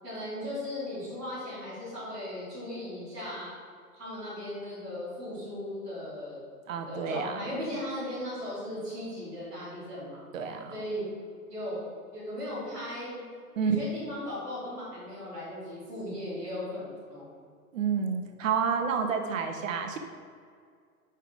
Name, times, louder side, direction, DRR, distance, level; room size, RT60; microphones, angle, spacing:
voice 1, 0.0-3.5 3.9-6.4 6.9-10.2 10.7-11.0 11.5-11.8 12.1-13.2 13.6-17.3, left 1 dB, 5° right, -14 dB, 0.3 m, -37 dB
voice 2, 6.7-7.5 10.3-10.7 13.6-13.8 17.7-20.0, right 6 dB, 55° right, 5 dB, 0.9 m, -29 dB
5.7 x 5.7 x 4.7 m, 2.1 s
hypercardioid pair, 120°, 46 cm